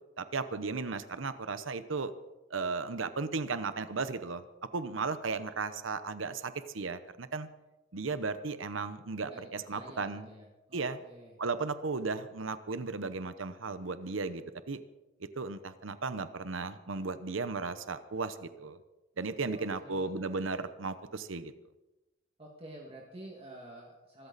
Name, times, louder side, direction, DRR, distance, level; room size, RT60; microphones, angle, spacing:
voice 1, 0.2-2.1 2.5-4.4 4.7-7.5 7.9-10.3 10.7-11.0 11.4-14.8 15.4-18.8 19.2-21.5, right 4 dB, 85° right, 12 dB, 0.9 m, -35 dB
voice 2, 9.3-11.3 19.5-20.2 22.4-24.3, right 1 dB, 30° right, -2 dB, 2.2 m, -49 dB
25.0 x 13.5 x 4.2 m, 1.0 s
head